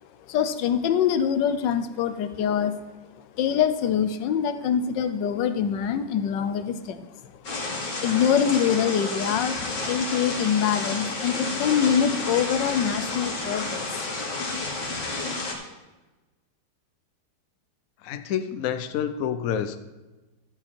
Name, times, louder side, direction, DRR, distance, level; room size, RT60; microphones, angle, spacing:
voice 1, 0.3-2.8 3.4-7.1 8.0-9.6 9.8-14.1, left 8 dB, 70° left, 10 dB, 1.3 m, -24 dB
sound 1, 7.4-15.5, left 3 dB, 40° left, 1.8 m, -30 dB
voice 2, 18.0-19.8, left 9 dB, 90° left, 9 dB, 0.7 m, -28 dB
12.0 x 7.1 x 4.4 m, 1.1 s
omnidirectional pair, 2.2 m